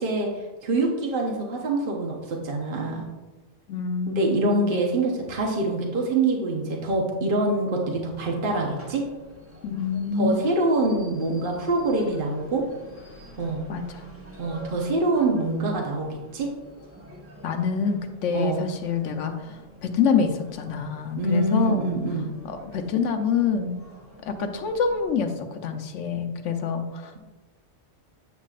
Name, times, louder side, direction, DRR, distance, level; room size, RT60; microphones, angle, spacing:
voice 1, 0.0-3.1 4.1-9.0 10.2-12.6 13.4-13.6 14.4-16.5 18.3-18.7 21.2-22.3, right 2 dB, 50° right, -1 dB, 1.1 m, -25 dB
voice 2, 3.7-4.7 9.6-10.4 13.7-14.0 17.4-21.9 22.4-23.8 24.2-27.2, left 6 dB, 80° left, 6 dB, 1.1 m, -26 dB
sound 1, 8.6-25.2, equal, 10° right, 1.1 m, -48 dB
8.1 x 7.3 x 2.4 m, 1.2 s
omnidirectional pair, 1.3 m